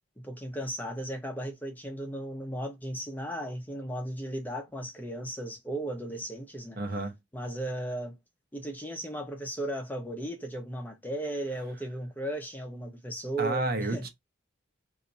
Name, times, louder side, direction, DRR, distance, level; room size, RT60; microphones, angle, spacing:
voice 1, 0.2-6.8 7.3-8.2 8.5-14.1, right 1 dB, 10° left, 0.9 m, -36 dB
voice 2, 6.8-7.1 13.4-14.1, right 2 dB, 50° right, 1.0 m, -31 dB
4.1 x 3.2 x 4.1 m
head